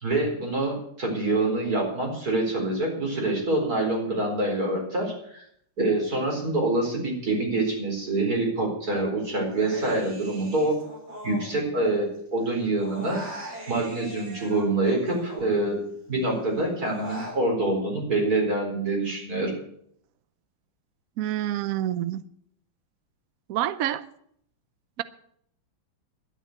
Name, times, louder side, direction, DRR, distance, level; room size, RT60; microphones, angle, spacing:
voice 1, 0.0-5.4 5.8-10.8 11.2-13.3 13.7-15.8 16.1-19.5, right 2 dB, 45° right, 4.8 m, -26 dB
Human voice, 9.5-12.2 12.4-15.9 16.3-17.4, right 1 dB, 60° right, 4.7 m, -40 dB
voice 2, 21.2-22.2 23.5-24.0, right 12 dB, 80° right, 0.7 m, -27 dB
11.5 x 10.0 x 7.8 m
omnidirectional pair, 2.3 m